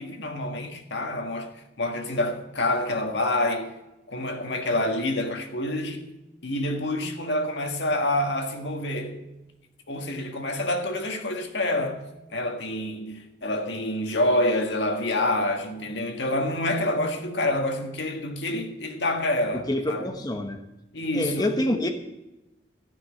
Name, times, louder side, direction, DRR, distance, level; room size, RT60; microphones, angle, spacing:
voice 1, 0.0-3.8 4.1-6.1 6.4-9.3 9.9-20.2 20.9-21.6, left 1 dB, 85° left, 1.7 m, -27 dB
voice 2, 19.7-20.6 21.1-21.9, left 1 dB, 25° left, 1.0 m, -26 dB
14.5 x 6.2 x 8.5 m
head